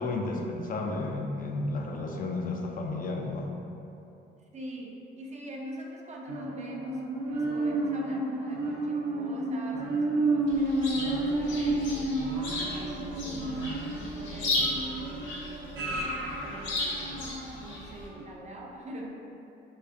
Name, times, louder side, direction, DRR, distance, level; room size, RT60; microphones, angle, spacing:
voice 1, 0.0-3.5, left 2 dB, 45° left, 1 dB, 0.4 m, -32 dB
voice 2, 4.5-17.1 17.6-19.2, right 1 dB, 35° right, -1 dB, 0.5 m, -44 dB
sound 1, 6.3-17.7 18.2-18.3, right 2 dB, 85° right, 0.6 m, -31 dB
Chirp tweet, 10.5-18.1, left 2 dB, 70° left, 0.8 m, -35 dB
5.1 x 2.0 x 2.5 m, 2.8 s
cardioid pair, 90°, 20 cm